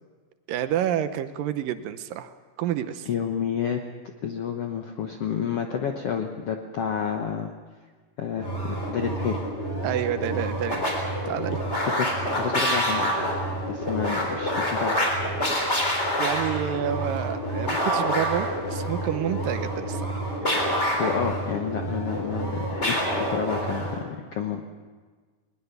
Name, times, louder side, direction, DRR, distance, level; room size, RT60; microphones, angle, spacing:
voice 1, 0.5-3.1 9.8-10.9 11.3-11.6 16.2-20.7, right 11 dB, 75° right, 10 dB, 2.4 m, -29 dB
voice 2, 3.1-3.8 4.2-7.5 8.2-9.4 11.8-12.1 12.3-13.1 13.7-15.0 20.7-24.6, left 7 dB, 70° left, 4 dB, 1.4 m, -30 dB
sound 1, 8.4-24.0, equal, 20° left, 3.9 m, -27 dB
20.5 x 20.5 x 6.9 m, 1.5 s
omnidirectional pair, 4.2 m